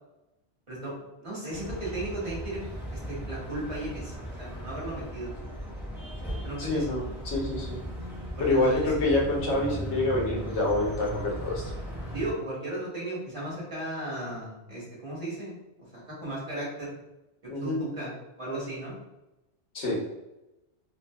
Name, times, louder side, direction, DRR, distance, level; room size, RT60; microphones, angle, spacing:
voice 1, 1.2-2.6 2.9-5.3 6.4-6.9 8.4-8.9 12.1-15.6 15.9-16.9 17.6-18.9, right 1 dB, 30° right, -6 dB, 1.1 m, -35 dB
sound 1, 1.5-12.3, equal, 5° right, 0.3 m, -37 dB
voice 2, 6.6-7.8 8.4-11.6 17.5-17.8 19.7-20.0, left 2 dB, 80° left, -2 dB, 1.1 m, -27 dB
2.7 x 2.5 x 2.2 m, 0.96 s
omnidirectional pair, 1.2 m